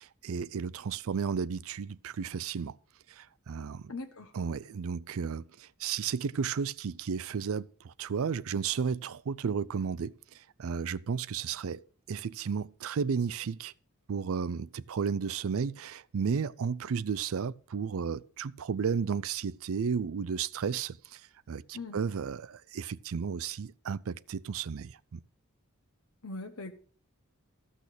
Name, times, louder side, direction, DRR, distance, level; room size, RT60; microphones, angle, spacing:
voice 1, 0.0-2.8 3.1-3.9 4.3-11.8 12.1-13.7 14.1-21.2 21.5-25.2, right 6 dB, 70° right, 0.4 m, -33 dB
voice 2, 3.9-4.3 21.7-22.0 26.2-26.7, left 3 dB, 70° left, 1.0 m, -40 dB
14.0 x 6.3 x 6.6 m
head